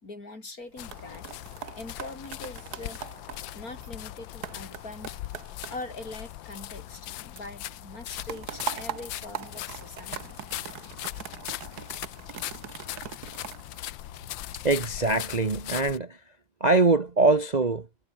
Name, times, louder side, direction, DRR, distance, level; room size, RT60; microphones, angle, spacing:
voice 1, 0.0-1.3 1.7-3.0 3.5-5.3 5.7-10.4, left 2 dB, 50° left, 5.7 m, -42 dB
sound 1, 0.6-7.1 7.4-14.5 15.0-15.4, right 10 dB, 60° right, 1.4 m, -42 dB
sound 2, 0.8-16.0, left 14 dB, 85° left, 1.5 m, -40 dB
voice 2, 14.5-16.2 16.6-17.9, right 3 dB, 25° right, 1.1 m, -23 dB
omnidirectional pair, 2.0 m